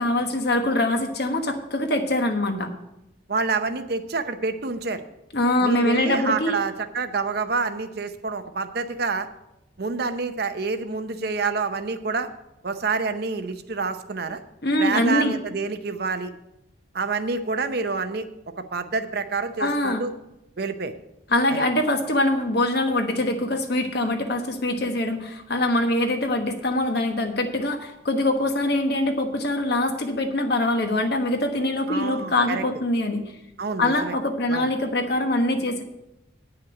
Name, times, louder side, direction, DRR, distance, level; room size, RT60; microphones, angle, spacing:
voice 1, 0.0-2.7 5.3-6.6 14.6-15.4 19.6-20.0 21.3-33.2 33.8-35.8, left 1 dB, 55° left, 5 dB, 1.2 m, -23 dB
voice 2, 3.3-5.0 5.6-9.3 9.8-12.3 12.6-14.4 14.8-16.3 16.9-18.3 18.7-20.1 20.6-20.9 21.5-21.7 31.9-32.6 33.6-34.1 34.5-34.7, right 4 dB, 55° right, 9 dB, 0.7 m, -27 dB
9.5 x 5.7 x 8.0 m, 0.88 s
head